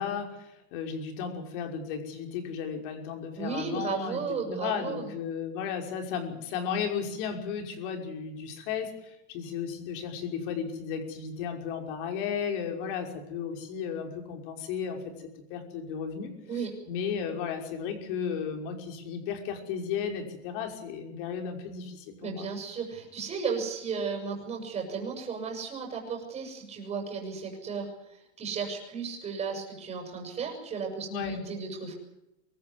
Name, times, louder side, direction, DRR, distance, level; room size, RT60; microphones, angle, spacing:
voice 1, 0.0-4.2 4.5-16.3 16.6-22.5 31.1-31.4, left 7 dB, 50° left, 5 dB, 5.7 m, -34 dB
voice 2, 3.4-5.1 16.5-16.7 22.2-27.9 28.4-31.9, right 5 dB, 20° right, 2 dB, 7.3 m, -34 dB
25.0 x 14.0 x 9.6 m, 0.87 s
supercardioid pair, 160°, 34 cm